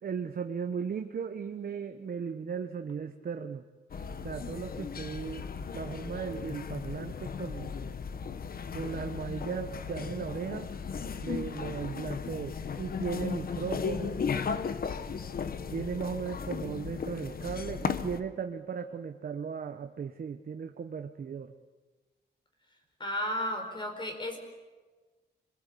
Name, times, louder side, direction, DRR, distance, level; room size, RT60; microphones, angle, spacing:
voice 1, 0.0-3.6 4.2-5.4 5.7-7.7 8.7-10.7 11.2-14.3 15.7-21.5, right 6 dB, 50° right, 6 dB, 1.1 m, -36 dB
sound 1, 3.9-18.2, left 6 dB, 50° left, 1.1 m, -36 dB
voice 2, 23.0-24.4, left 1 dB, 25° left, 4 dB, 4.4 m, -33 dB
26.0 x 21.0 x 8.5 m, 1.3 s
wide cardioid pair, 160°, 19 cm